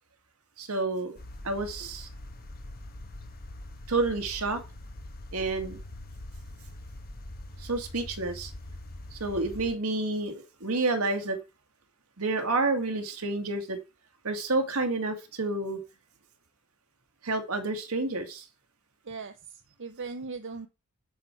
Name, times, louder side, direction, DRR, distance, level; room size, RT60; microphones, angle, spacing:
voice 1, 0.6-1.2 1.4-2.1 3.9-4.6 5.3-5.8 7.6-8.5 9.1-11.4 12.2-13.8 14.2-15.8 17.2-18.5, right 3 dB, 75° right, 2.1 m, -29 dB
sound 1, 1.2-9.8, left 1 dB, 45° left, 1.0 m, -43 dB
voice 2, 19.0-20.7, right 4 dB, 60° right, 0.8 m, -39 dB
10.0 x 4.6 x 6.1 m
head